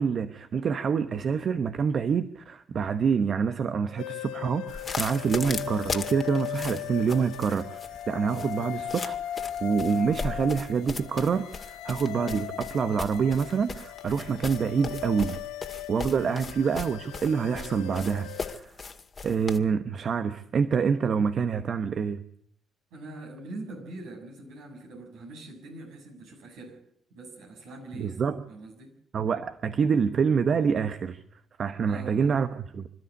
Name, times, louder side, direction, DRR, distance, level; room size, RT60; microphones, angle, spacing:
voice 1, 0.0-7.8 8.1-9.2 9.6-15.4 15.9-18.7 19.2-22.2 27.9-28.4 29.1-31.2 31.6-32.9, right 6 dB, 55° right, 10 dB, 1.0 m, -26 dB
sound 1, 4.0-18.5, left 12 dB, 80° left, 0.8 m, -38 dB
sound 2, 4.7-19.6, left 4 dB, 45° left, 2.1 m, -38 dB
voice 2, 22.9-26.8 27.1-28.2 28.5-29.0 31.8-32.4, right 2 dB, 80° right, 1 dB, 6.6 m, -43 dB
26.5 x 13.0 x 8.3 m, 0.66 s
hypercardioid pair, 50°, 0 cm